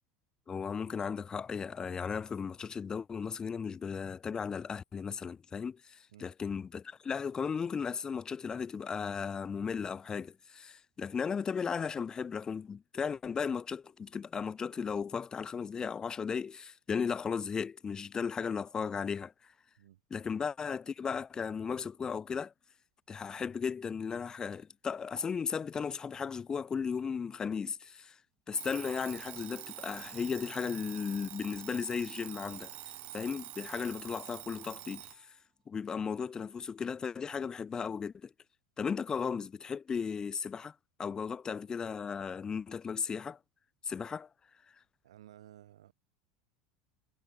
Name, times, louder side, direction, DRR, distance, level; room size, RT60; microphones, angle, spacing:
voice 1, 0.5-19.3 20.1-22.5 23.1-28.2 28.5-32.7 33.1-35.3 35.7-38.3 38.8-43.4 43.8-44.3, left 6 dB, 25° left, 0.8 m, -36 dB
Alarm, 28.5-35.2, right 16 dB, 50° right, 1.2 m, -46 dB
voice 2, 45.0-45.9, right 12 dB, 85° right, 1.6 m, -55 dB
hypercardioid pair, 100°, 3 cm